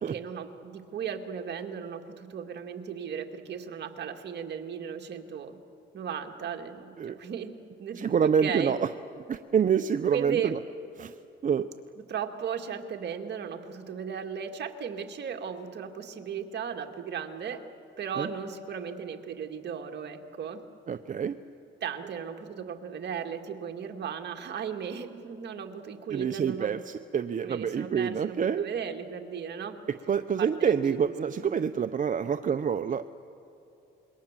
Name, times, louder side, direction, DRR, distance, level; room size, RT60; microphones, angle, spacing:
voice 1, 0.1-5.6 5.9-7.5 7.8-8.8 10.1-10.5 12.1-17.7 18.0-20.6 21.8-26.8 27.4-29.8 30.4-31.0, right 7 dB, 60° right, 4 dB, 2.0 m, -36 dB
voice 2, 8.0-8.9 9.3-10.6 11.0-11.1 11.4-11.7 18.2-18.3 20.9-21.4 26.1-28.7 30.1-33.1, right 7 dB, 40° right, 10 dB, 0.7 m, -27 dB
27.0 x 22.5 x 7.5 m, 2.7 s
cardioid pair, 90°, 20 cm